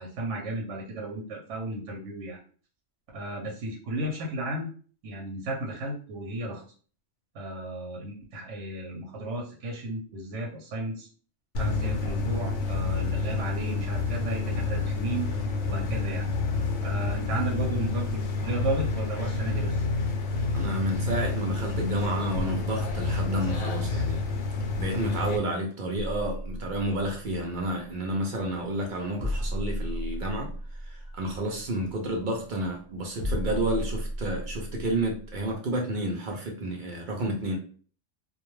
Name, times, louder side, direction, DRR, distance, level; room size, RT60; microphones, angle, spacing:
voice 1, 0.0-2.4 3.1-4.7 5.0-6.6 7.3-11.1 11.6-15.3 15.7-16.3 16.8-19.9, right 1 dB, 80° right, 1.0 m, -34 dB
sound 1, 11.5-25.4, left 3 dB, 80° left, 0.9 m, -29 dB
voice 2, 20.5-24.2 24.8-30.5 30.8-37.6, right 1 dB, 55° right, 0.6 m, -30 dB
sound 2, 26.0-35.6, equal, 50° left, 0.7 m, -35 dB
2.2 x 2.2 x 3.0 m
omnidirectional pair, 1.2 m